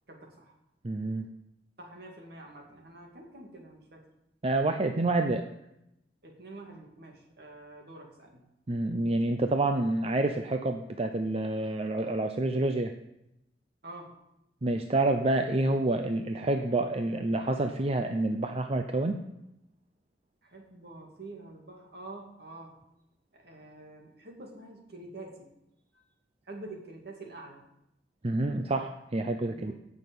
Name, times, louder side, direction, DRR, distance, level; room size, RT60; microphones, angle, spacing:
voice 1, 0.1-0.5 1.8-4.1 6.2-8.4 13.8-14.2 20.4-22.7 23.3-25.5 25.9-26.0 26.4-27.6 29.5-29.7, right 2 dB, 65° right, 1 dB, 2.4 m, -47 dB
voice 2, 0.8-1.3 4.4-5.5 8.7-12.9 14.6-19.2 28.2-29.7, right 2 dB, 35° right, 6 dB, 0.6 m, -28 dB
17.0 x 6.2 x 5.3 m, 0.84 s
head